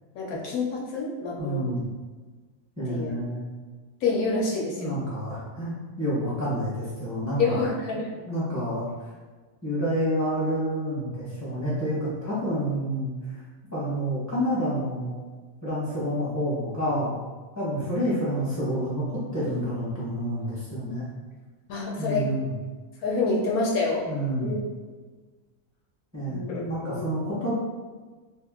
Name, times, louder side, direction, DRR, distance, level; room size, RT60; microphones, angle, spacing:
voice 1, 0.1-1.8 2.9-3.2 4.0-4.9 7.4-8.1 17.7-17.9 21.7-22.3 23.0-24.1 24.4-24.6 26.3-27.1, left 3 dB, 75° left, -2 dB, 1.1 m, -27 dB
voice 2, 1.4-1.8 2.8-3.5 4.8-7.6 8.3-8.9 9.6-13.1 13.7-15.2 15.6-17.2 17.6-21.1 22.0-22.5 24.1-24.5 26.1-27.5, equal, 15° right, -8 dB, 0.9 m, -28 dB
2.8 x 2.5 x 3.7 m, 1.3 s
omnidirectional pair, 1.6 m